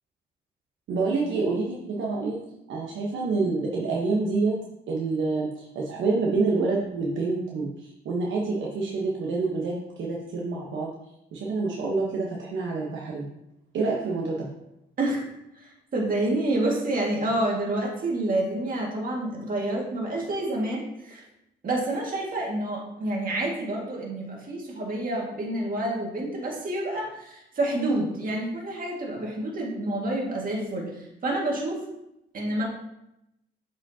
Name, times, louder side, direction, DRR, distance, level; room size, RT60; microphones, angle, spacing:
voice 1, 0.9-2.4 2.7-4.5 4.9-10.9 11.3-13.2 13.7-14.5, right 3 dB, 75° right, -3 dB, 1.1 m, -27 dB
voice 2, 15.6-21.2 21.6-31.8 32.3-32.6, right 1 dB, 45° right, -2 dB, 2.0 m, -28 dB
7.3 x 4.9 x 2.8 m, 0.85 s
cardioid pair, 90°, 20 cm